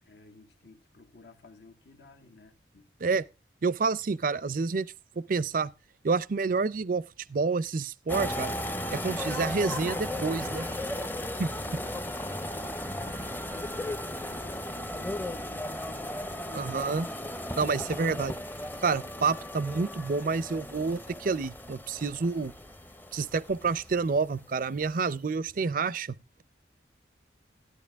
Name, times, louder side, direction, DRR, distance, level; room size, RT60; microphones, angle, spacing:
voice 1, 0.0-2.9 11.5-16.7, left 3 dB, 65° left, 1.6 m, -53 dB
voice 2, 3.6-5.7 6.0-7.0 7.3-8.5 8.9-10.7 11.4-11.5 16.5-17.1 17.6-18.3 18.8-22.5 23.1-26.1, right 4 dB, 50° right, 0.5 m, -28 dB
sound 1, 8.1-24.4 24.6-24.9, left 1 dB, 10° left, 0.7 m, -36 dB
13.0 x 11.0 x 3.5 m
head